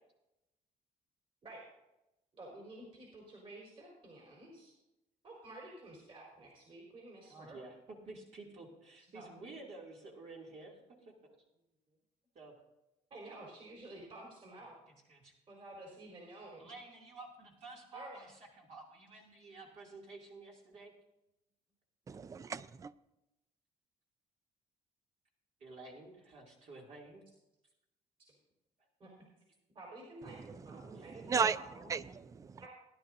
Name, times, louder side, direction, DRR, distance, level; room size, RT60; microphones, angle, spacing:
voice 1, 2.3-4.7 5.2-7.6 9.1-9.3 13.1-14.8 15.5-16.7 17.9-18.2 29.0-29.1 29.7-31.9 32.6-32.7, right 2 dB, 45° right, -3 dB, 4.4 m, -51 dB
voice 2, 7.3-10.8 11.0-11.1 12.3-12.5 15.1-15.3 16.6-20.9 25.6-27.2 30.7-31.1, right 3 dB, 60° right, -3 dB, 2.7 m, -51 dB
voice 3, 22.1-22.9 30.9-31.6 31.9-32.6, right 6 dB, 25° right, 16 dB, 0.4 m, -35 dB
19.5 x 11.0 x 2.7 m, 0.92 s
cardioid pair, 120°, 13 cm